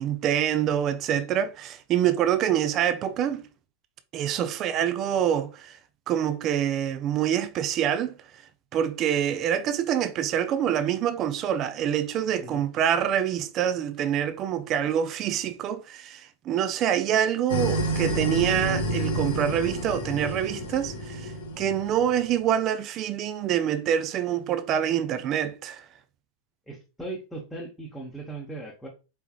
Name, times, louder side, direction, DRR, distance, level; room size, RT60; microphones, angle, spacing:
voice 1, 0.0-3.4 4.1-5.7 6.1-8.1 8.7-25.8, right 10 dB, 35° right, 0.4 m, -26 dB
sound 1, 17.5-22.4, right 1 dB, 55° left, 0.9 m, -29 dB
voice 2, 26.7-28.9, right 2 dB, 5° left, 0.9 m, -38 dB
4.5 x 3.4 x 2.3 m
figure-of-eight pair, 90°, 0 cm